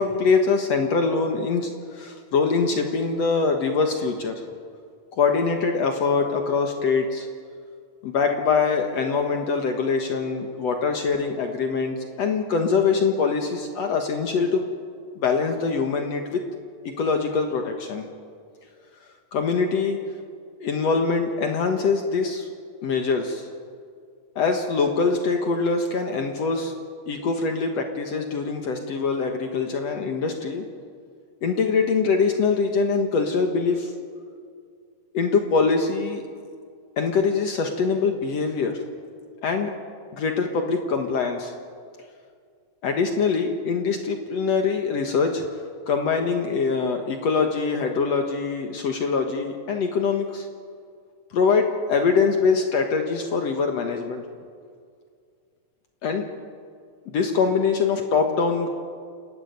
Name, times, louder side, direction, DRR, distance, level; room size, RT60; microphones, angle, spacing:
voice 1, 0.0-4.4 5.1-7.3 8.0-14.7 15.2-16.4 17.0-18.1 19.3-20.0 20.6-22.5 22.8-23.5 24.4-26.8 27.1-30.6 31.4-33.9 35.1-36.2 37.0-38.8 39.4-39.7 40.1-41.5 42.8-45.4 45.9-50.5 51.3-54.2 56.0-56.2 57.1-58.7, left 5 dB, 60° left, 4 dB, 2.4 m, -23 dB
29.0 x 13.5 x 9.4 m, 2.2 s
omnidirectional pair, 3.7 m